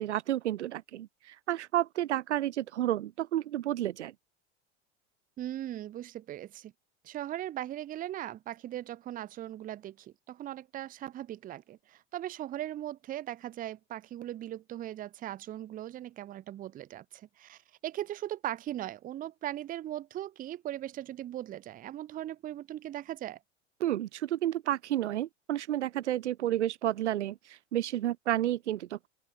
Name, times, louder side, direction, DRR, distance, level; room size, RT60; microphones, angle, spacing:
voice 1, 0.0-4.1 23.8-29.1, right 13 dB, 80° right, 0.6 m, -31 dB
voice 2, 5.4-6.7 7.0-23.4, right 13 dB, 25° right, 0.5 m, -39 dB
open air
hypercardioid pair, 85°, 34 cm